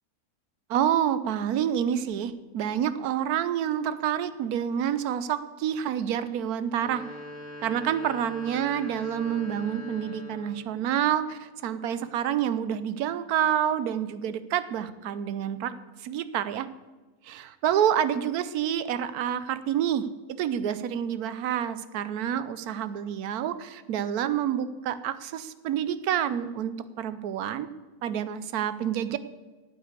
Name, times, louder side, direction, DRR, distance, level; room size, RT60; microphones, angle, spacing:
voice 1, 0.7-7.0 7.6-15.7 16.0-16.7 17.2-27.7 28.0-29.2, right 9 dB, 85° right, 13 dB, 1.2 m, -28 dB
sound 1, 6.7-10.7, left 2 dB, 30° right, 4.1 m, -42 dB
9.6 x 8.4 x 8.2 m, 1.2 s
omnidirectional pair, 1.6 m